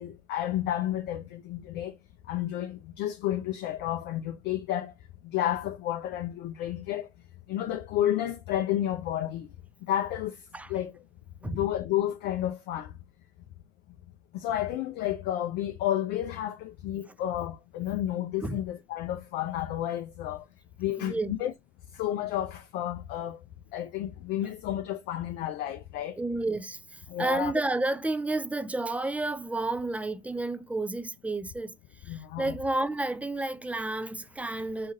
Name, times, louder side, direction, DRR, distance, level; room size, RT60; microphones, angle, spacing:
voice 1, 0.0-2.0 2.3-4.9 5.2-7.1 7.5-9.5 9.8-10.4 10.7-10.9 11.4-12.9 14.3-20.4 20.8-21.5 21.9-23.4 23.7-26.2 27.1-27.5 32.1-32.5, left 12 dB, 55° left, 0.5 m, -31 dB
voice 2, 21.0-21.4 26.2-34.9, right 2 dB, 5° right, 0.4 m, -31 dB
3.6 x 2.5 x 2.6 m
hypercardioid pair, 65°, 20 cm